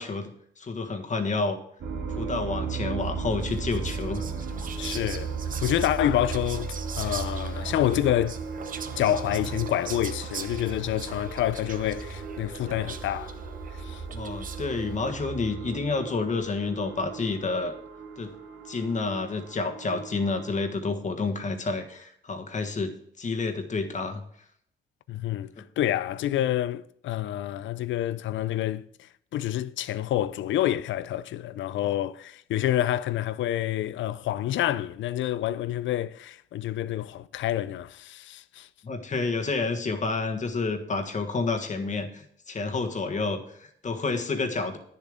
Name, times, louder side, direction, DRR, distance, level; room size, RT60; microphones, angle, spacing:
voice 1, 0.0-1.6 2.2-4.2 14.1-17.7 18.2-18.3 18.7-22.9 23.2-24.2 38.8-44.8, left 3 dB, 40° left, 1.5 m, -29 dB
sound 1, 1.8-20.7, right 5 dB, 65° right, 2.3 m, -36 dB
Whispering, 3.4-14.8, right 6 dB, 45° right, 0.9 m, -42 dB
voice 2, 4.8-5.3 5.6-8.4 9.0-13.4 13.8-14.0 25.1-28.8 29.3-38.7, left 12 dB, 70° left, 0.5 m, -28 dB
9.8 x 7.1 x 5.0 m
cardioid pair, 90°, 20 cm